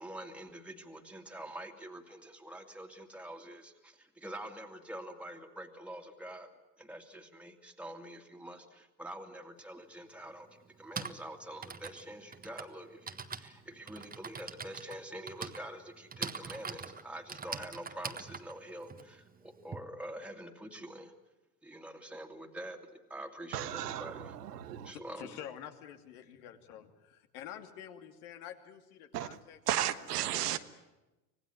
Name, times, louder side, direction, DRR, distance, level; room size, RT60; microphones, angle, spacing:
voice 1, 0.0-6.5 6.8-10.5 10.8-21.1 21.6-24.4 24.8-25.4, right 1 dB, 5° right, 3 dB, 2.4 m, -46 dB
Typing, 9.6-9.7 10.7-19.8, right 5 dB, 20° right, 1.5 m, -43 dB
voice 2, 23.5-24.9 29.1-29.3 29.7-30.6, right 12 dB, 85° right, 10 dB, 1.5 m, -34 dB
voice 3, 24.9-29.8 30.2-30.6, left 10 dB, 70° left, 6 dB, 2.8 m, -48 dB
26.0 x 18.0 x 9.6 m, 1.0 s
hypercardioid pair, 90°, 46 cm